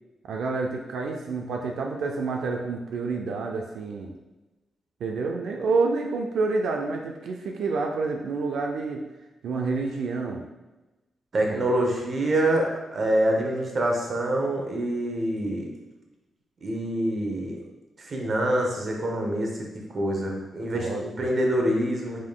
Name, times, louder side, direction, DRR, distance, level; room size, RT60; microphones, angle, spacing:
voice 1, 0.2-4.1 5.0-9.0 9.4-10.4 11.5-11.6 20.2-20.4 20.7-21.0, right 4 dB, 85° right, 1 dB, 0.4 m, -28 dB
voice 2, 11.3-15.7 16.6-17.6 18.0-22.2, right 1 dB, 35° right, 1 dB, 0.7 m, -26 dB
5.1 x 3.7 x 2.2 m, 1.1 s
wide cardioid pair, 170°, 0 cm